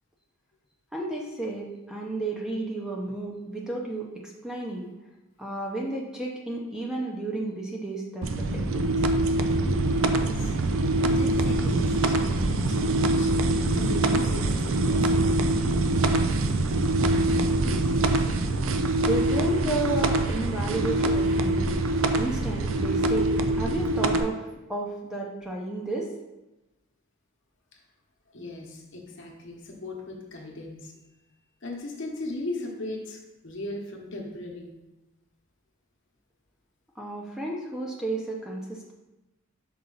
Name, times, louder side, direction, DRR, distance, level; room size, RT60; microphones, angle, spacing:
voice 1, 0.9-4.9 5.4-8.8 19.0-21.7 22.2-24.4 24.7-26.1 37.0-38.9, right 2 dB, 5° right, -2 dB, 0.7 m, -32 dB
sound 1, 8.2-24.2, right 2 dB, 65° right, 0.5 m, -24 dB
voice 2, 10.1-10.5 11.0-13.3 13.7-15.4 28.3-30.9 31.6-34.7, left 2 dB, 60° left, 0 dB, 1.1 m, -37 dB
5.5 x 4.6 x 3.9 m, 1.0 s
head